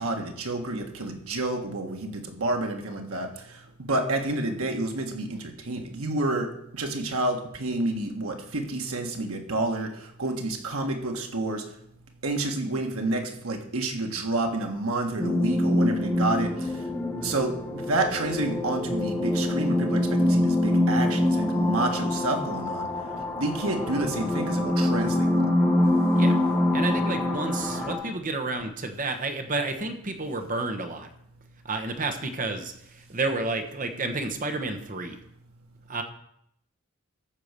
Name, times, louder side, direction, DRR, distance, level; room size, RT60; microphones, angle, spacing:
voice 1, 0.0-3.3 3.8-11.6 12.2-16.5 17.2-22.9 23.4-25.5, right 2 dB, 80° right, 4 dB, 1.6 m, -29 dB
sound 1, 15.2-27.9, left 1 dB, 10° left, 2.2 m, -25 dB
voice 2, 26.7-31.1 31.6-35.2 35.9-36.0, right 3 dB, 40° right, 6 dB, 1.1 m, -30 dB
14.0 x 4.8 x 6.7 m, 0.74 s
head